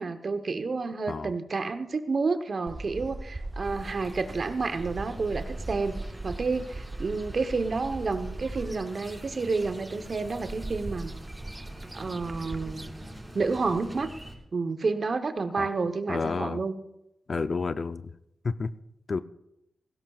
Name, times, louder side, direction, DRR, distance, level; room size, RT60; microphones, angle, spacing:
voice 1, 0.0-6.0 6.2-11.1 11.9-13.0 13.3-14.1 14.5-16.7, right 4 dB, 55° right, 9 dB, 1.0 m, -30 dB
sound 1, 2.7-13.2, right 2 dB, 30° right, 0.7 m, -40 dB
sound 2, 3.6-14.4, equal, 10° right, 4.3 m, -46 dB
voice 2, 16.1-16.6 17.3-18.1 18.4-18.7 19.1-19.2, left 4 dB, 55° left, 13 dB, 0.5 m, -30 dB
17.0 x 16.5 x 2.4 m, 0.85 s
supercardioid pair, 45°, 0 cm